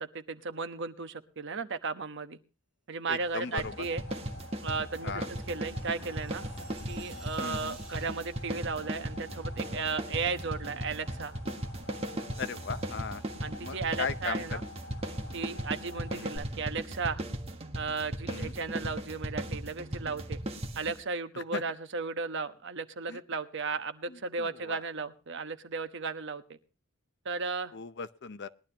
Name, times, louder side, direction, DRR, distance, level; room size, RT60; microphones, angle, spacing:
voice 1, 0.0-2.4 2.9-4.0 4.6-5.1 5.5-6.4 6.9-11.3 13.4-14.6 15.3-17.2 17.7-20.4 20.8-26.6 27.2-27.7, right 4 dB, 55° right, 9 dB, 1.1 m, -35 dB
voice 2, 3.1-3.7 5.0-5.3 7.4-7.8 12.4-13.2 13.6-14.6 16.1-16.3 18.3-18.5 21.5-21.6 23.1-23.2 24.1-24.8 27.7-28.5, left 5 dB, 55° left, 13 dB, 0.7 m, -38 dB
sound 1, 3.2-16.4, left 2 dB, 85° left, 2.5 m, -49 dB
sound 2, 3.6-21.0, right 1 dB, 30° right, 1.5 m, -37 dB
sound 3, 4.0-8.5, right 1 dB, 5° right, 5.3 m, -52 dB
20.5 x 12.0 x 2.9 m, 0.34 s
head